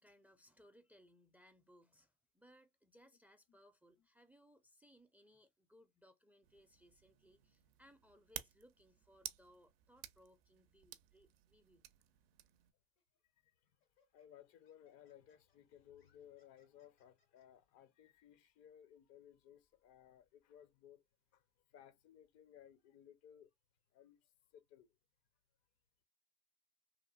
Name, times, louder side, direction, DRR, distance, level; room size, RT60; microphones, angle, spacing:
voice 1, 0.0-11.9, equal, 5° right, 0.4 m, -67 dB
sound 1, 6.4-12.7, right 13 dB, 85° right, 0.4 m, -54 dB
Laughter, 13.0-13.2 13.8-17.5, left 4 dB, 90° left, 1.2 m, -80 dB
voice 2, 14.1-21.0 21.3-21.4 21.7-23.5 23.9-25.0, left 10 dB, 60° left, 0.6 m, -61 dB
2.8 x 2.5 x 2.2 m
hypercardioid pair, 80°, 29 cm